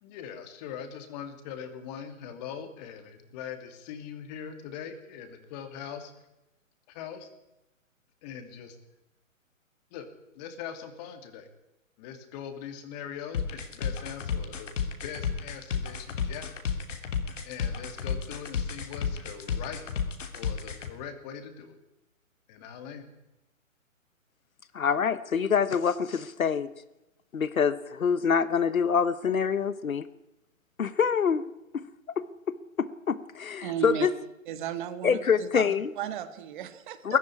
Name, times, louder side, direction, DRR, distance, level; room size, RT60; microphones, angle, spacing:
voice 1, 0.0-6.1 6.9-7.3 8.2-8.8 9.9-10.1 10.3-11.5 12.0-14.7 15.0-16.5 17.4-19.8 20.3-21.8 22.5-23.1, left 8 dB, 30° left, 8 dB, 2.7 m, -41 dB
sound 1, 13.3-20.9, left 7 dB, 65° left, 3.1 m, -32 dB
voice 2, 24.7-26.7 27.3-30.1 30.8-31.4 31.7-31.9 32.2-34.1 35.0-35.9 37.0-37.2, left 6 dB, 85° left, 15 dB, 1.2 m, -26 dB
voice 3, 33.6-34.1 34.5-37.2, right 11 dB, 35° right, 11 dB, 1.7 m, -35 dB
18.5 x 14.5 x 9.9 m, 0.95 s
hypercardioid pair, 140°, 40 cm